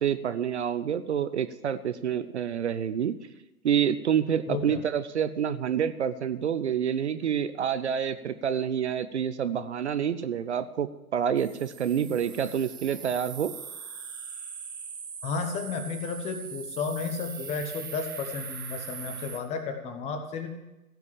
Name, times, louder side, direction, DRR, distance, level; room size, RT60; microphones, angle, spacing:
voice 1, 0.0-3.1 3.6-10.9 11.1-13.5, right 8 dB, 50° right, 12 dB, 0.7 m, -28 dB
voice 2, 4.5-4.8 15.2-20.5, left 5 dB, 15° left, 7 dB, 1.1 m, -33 dB
sound 1, 11.4-19.4, right 6 dB, 15° right, 0.4 m, -41 dB
16.0 x 6.0 x 8.7 m, 0.98 s
figure-of-eight pair, 125°, 45 cm